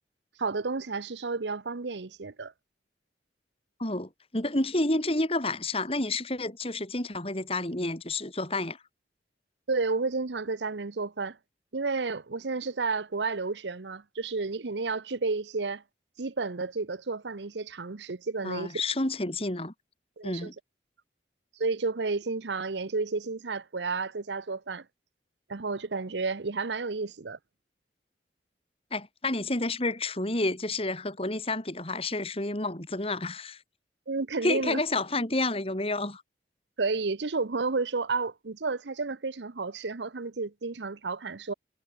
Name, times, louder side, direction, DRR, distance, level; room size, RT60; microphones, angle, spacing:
voice 1, 0.4-2.5 9.7-11.4 11.7-15.8 16.2-18.7 20.2-20.5 21.6-24.8 25.5-27.4 34.1-34.8 36.8-41.5, right 4 dB, 85° right, 0.9 m, -31 dB
voice 2, 3.8-8.8 18.4-19.7 20.2-20.5 28.9-33.6 34.4-36.2, left 2 dB, 35° left, 3.6 m, -30 dB
head